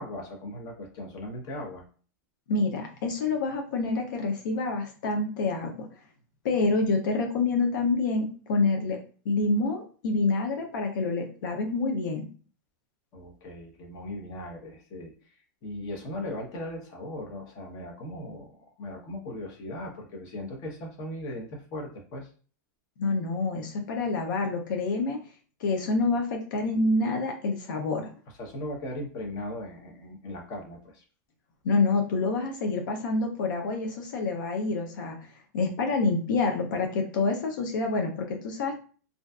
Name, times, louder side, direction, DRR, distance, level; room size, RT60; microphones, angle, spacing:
voice 1, 0.0-1.8 13.1-15.4 15.6-22.3 28.4-31.0, left 1 dB, 40° left, 1 dB, 0.9 m, -38 dB
voice 2, 2.5-5.9 6.4-9.0 9.3-12.3 23.0-25.2 25.6-28.1 31.6-38.8, left 3 dB, 80° left, 3 dB, 0.6 m, -27 dB
2.5 x 2.3 x 2.3 m, 0.40 s
supercardioid pair, 140°, 10 cm